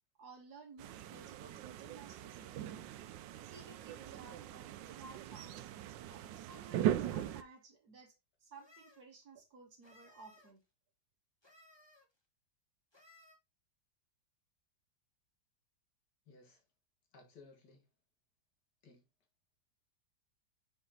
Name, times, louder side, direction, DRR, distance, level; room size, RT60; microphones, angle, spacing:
voice 1, 0.2-3.0 3.5-5.7 6.1-8.1 8.4-10.6, right 4 dB, 60° right, 1.7 m, -56 dB
sound 1, 0.8-7.4, right 11 dB, 85° right, 1.3 m, -40 dB
sound 2, 3.8-3.9 4.6-5.6 6.6-7.5 8.5-9.0 9.8-10.5 11.4-12.1 12.9-13.4, left 2 dB, 15° left, 1.5 m, -64 dB
voice 2, 16.3-16.6 17.1-17.9 18.8-19.0, left 3 dB, 70° left, 2.4 m, -59 dB
6.3 x 6.0 x 2.9 m
omnidirectional pair, 1.9 m